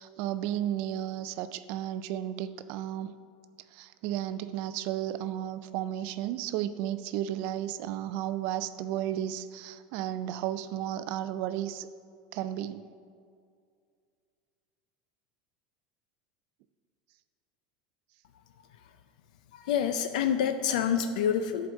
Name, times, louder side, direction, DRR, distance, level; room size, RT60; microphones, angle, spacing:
voice 1, 0.0-3.1 3.7-11.9 12.3-12.8, right 11 dB, 40° right, 13 dB, 0.4 m, -33 dB
voice 2, 19.5-21.7, left 8 dB, 85° left, 8 dB, 0.5 m, -27 dB
11.0 x 4.7 x 6.3 m, 2.2 s
supercardioid pair, 180°, 4 cm